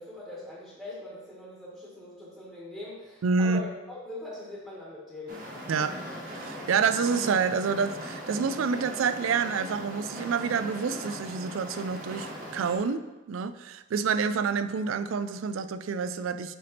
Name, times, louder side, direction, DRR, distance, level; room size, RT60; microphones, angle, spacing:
voice 1, 0.0-5.4, left 1 dB, ahead, -6 dB, 1.4 m, -42 dB
voice 2, 3.2-3.6 5.7-6.0 6.3-13.0 13.3-16.6, right 5 dB, 75° right, 11 dB, 0.4 m, -28 dB
sound 1, 5.3-12.8, equal, 45° right, 1.5 m, -39 dB
7.9 x 3.4 x 4.2 m, 1.1 s
head